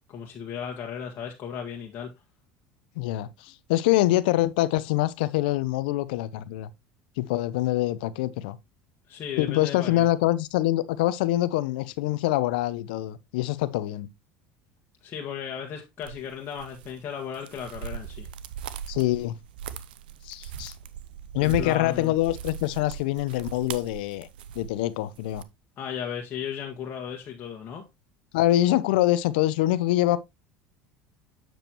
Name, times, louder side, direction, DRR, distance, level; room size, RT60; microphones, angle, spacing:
voice 1, 0.1-2.1 9.1-10.1 15.0-18.3 21.4-22.2 25.8-27.8, left 7 dB, 45° left, 1.6 m, -35 dB
voice 2, 3.0-6.7 7.2-8.6 9.4-14.1 18.9-19.3 20.3-20.7 21.3-24.3 24.6-25.4 28.3-30.2, left 15 dB, 80° left, 0.6 m, -25 dB
sound 1, 16.0-25.4, right 9 dB, 85° right, 0.6 m, -40 dB
7.7 x 6.8 x 2.9 m
supercardioid pair, 90°, 5 cm